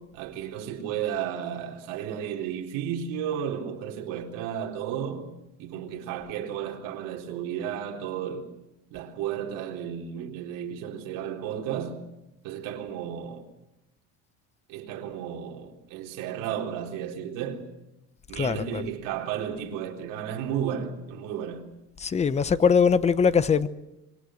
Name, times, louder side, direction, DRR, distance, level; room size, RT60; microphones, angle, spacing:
voice 1, 0.0-5.3 5.6-8.5 8.9-12.0 12.4-13.5 14.7-17.7 18.3-21.6, right 9 dB, 70° right, 4.0 m, -33 dB
voice 2, 18.4-18.8 22.0-23.7, left 6 dB, 20° left, 0.8 m, -22 dB
26.0 x 24.0 x 6.5 m
cardioid pair, 150°, 34 cm